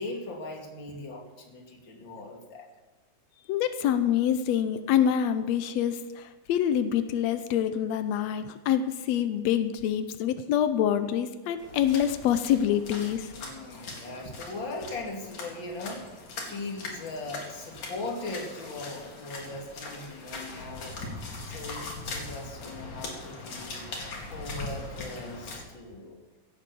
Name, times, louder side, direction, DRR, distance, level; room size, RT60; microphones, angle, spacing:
voice 1, 0.0-2.7 13.3-23.9 24.3-26.2, left 2 dB, 35° left, 1 dB, 2.9 m, -39 dB
voice 2, 3.5-13.3, left 9 dB, 90° left, 10 dB, 1.5 m, -26 dB
sound 1, 11.6-25.6, left 3 dB, 60° left, 4.0 m, -40 dB
16.5 x 9.5 x 7.0 m, 1.3 s
omnidirectional pair, 4.1 m